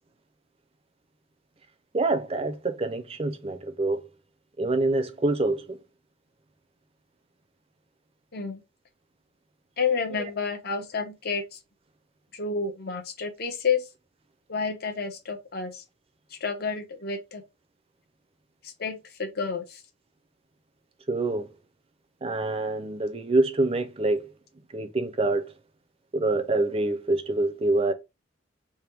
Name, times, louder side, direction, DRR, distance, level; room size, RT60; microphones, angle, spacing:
voice 1, 1.9-4.0 4.6-5.8 10.1-10.3 21.1-21.5 22.2-24.3 24.7-25.5 26.1-27.9, right 2 dB, 30° right, 0.5 m, -26 dB
voice 2, 9.8-11.6 12.3-13.8 14.5-15.8 16.4-17.4 18.6-19.8, left 5 dB, 50° left, 0.8 m, -30 dB
3.5 x 2.2 x 4.4 m
head